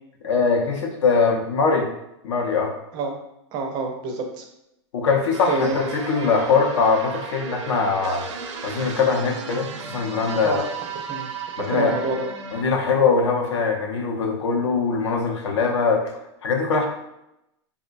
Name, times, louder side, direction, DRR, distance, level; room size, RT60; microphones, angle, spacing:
voice 1, 0.2-1.9 2.2-2.7 4.9-8.2 8.6-10.6 11.6-11.9 12.5-16.0 16.4-16.9, left 4 dB, 75° left, 2 dB, 0.7 m, -22 dB
voice 2, 3.5-4.4 5.5-5.8 10.4-10.6 11.1-11.3 11.7-12.3, right 3 dB, 30° right, 3 dB, 0.4 m, -27 dB
sound 1, 5.3-12.6, right 5 dB, 85° right, 0.5 m, -35 dB
3.6 x 2.1 x 2.5 m, 0.84 s
supercardioid pair, 155°, 15 cm